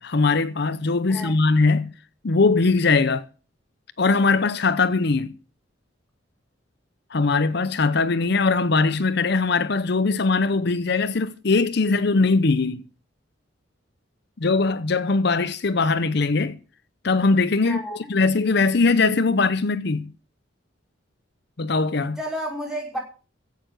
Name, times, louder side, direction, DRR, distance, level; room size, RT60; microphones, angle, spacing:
voice 1, 0.0-1.9 2.2-3.2 4.0-5.3 7.1-12.8 14.4-16.6 17.0-17.8 18.1-20.1 21.6-22.2, left 3 dB, 55° left, 0.7 m, -21 dB
voice 2, 17.6-18.0 22.2-23.0, equal, 5° right, 4.9 m, -31 dB
15.5 x 6.8 x 8.1 m
head